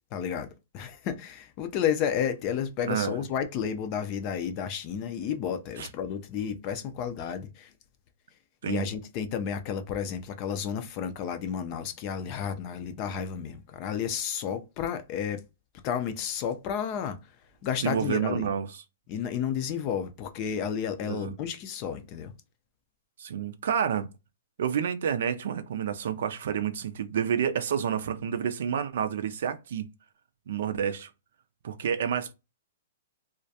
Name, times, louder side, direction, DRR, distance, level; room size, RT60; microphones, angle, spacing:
voice 1, 0.1-0.5 0.7-7.7 8.6-15.4 15.8-17.3 17.6-18.5 19.1-22.3, left 8 dB, 35° left, 0.4 m, -31 dB
voice 2, 2.8-3.2 5.8-5.9 8.6-8.8 17.8-18.7 21.0-21.3 23.2-24.1 24.6-29.8 30.5-31.1 31.6-32.3, right 8 dB, 65° right, 0.4 m, -29 dB
2.4 x 2.1 x 2.7 m
hypercardioid pair, 150°, 0 cm